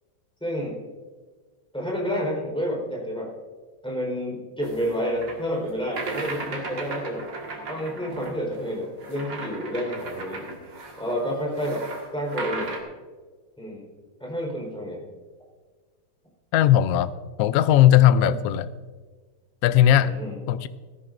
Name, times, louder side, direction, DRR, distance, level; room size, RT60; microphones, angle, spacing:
voice 1, 0.4-0.8 1.7-3.3 3.8-7.2 7.7-10.4 11.0-11.9 12.1-12.7 13.6-13.9 14.2-15.0 18.2-18.4 19.9-20.4, equal, ahead, -3 dB, 4.0 m, -29 dB
sound 1, 4.6-12.8, right 3 dB, 55° right, 2.4 m, -36 dB
voice 2, 16.5-17.1 17.4-18.7 19.6-20.1 20.5-20.7, left 11 dB, 85° left, 13 dB, 0.8 m, -18 dB
18.0 x 14.0 x 2.6 m, 1.4 s
omnidirectional pair, 2.2 m